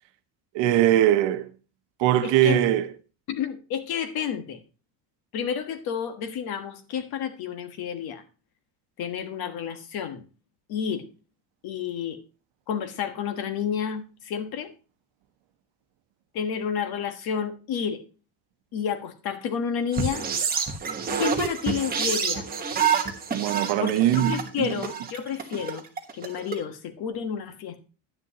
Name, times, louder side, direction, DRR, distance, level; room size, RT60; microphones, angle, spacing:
voice 1, 0.5-1.5 2.0-2.9 23.3-24.7, right 12 dB, 70° right, 1.0 m, -21 dB
voice 2, 2.2-2.6 3.3-4.6 5.3-8.2 9.0-10.2 10.7-11.1 11.6-12.2 12.7-14.7 16.3-18.0 18.7-20.3 21.2-22.5 23.8-23.9 24.3-25.8 26.1-27.8, left 7 dB, 55° left, 1.4 m, -30 dB
sound 1, 19.9-26.5, right 6 dB, 20° right, 1.3 m, -27 dB
10.5 x 9.8 x 2.9 m
cardioid pair, 170°, 45 cm